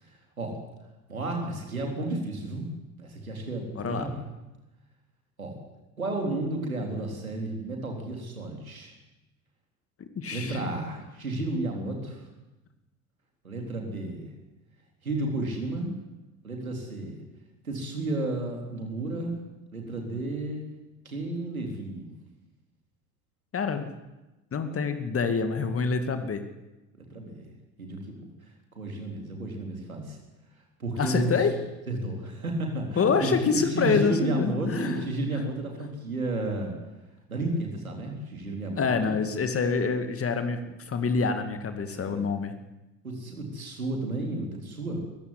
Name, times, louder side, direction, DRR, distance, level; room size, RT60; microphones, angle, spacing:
voice 1, 1.1-2.7 3.0-4.2 5.4-5.6 6.0-8.9 10.3-12.2 13.4-14.3 15.0-15.9 16.4-17.2 17.6-19.4 19.7-20.6 21.0-22.1 27.0-27.5 27.8-28.2 28.7-30.2 30.8-31.3 31.9-36.7 37.3-39.4 41.9-42.3 43.0-45.0, right 2 dB, 85° right, 1 dB, 3.9 m, -32 dB
voice 2, 3.8-4.1 10.0-10.6 23.5-23.9 24.5-26.4 31.0-31.5 33.0-35.1 38.8-42.5, left 5 dB, 35° left, 7 dB, 2.3 m, -26 dB
21.5 x 15.5 x 9.8 m, 1.1 s
figure-of-eight pair, 60°, 41 cm